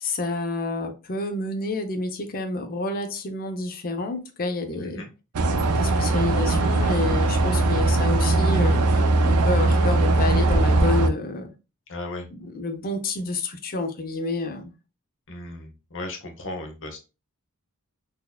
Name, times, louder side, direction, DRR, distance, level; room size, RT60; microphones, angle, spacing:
voice 1, 0.0-5.1 5.7-11.5 12.3-14.7, left 2 dB, 40° left, 0.6 m, -29 dB
voice 2, 4.7-5.1 11.9-12.3 15.3-17.0, left 2 dB, 60° left, 0.9 m, -36 dB
sound 1, 5.3-11.1, right 2 dB, 85° right, 0.5 m, -20 dB
3.9 x 2.9 x 2.2 m
head